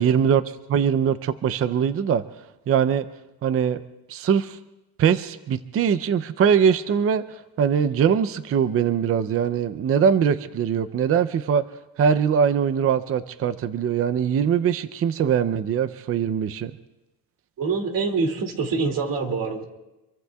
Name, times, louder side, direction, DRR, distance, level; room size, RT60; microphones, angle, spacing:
voice 1, 0.0-2.2 2.7-3.1 3.4-3.8 4.1-4.6 5.0-7.2 7.6-11.6 12.0-16.7, right 7 dB, 35° right, 14 dB, 0.5 m, -22 dB
voice 2, 17.6-19.6, right 4 dB, 60° right, 4 dB, 2.4 m, -25 dB
27.0 x 23.0 x 2.3 m, 0.99 s
cardioid pair, 145°, 39 cm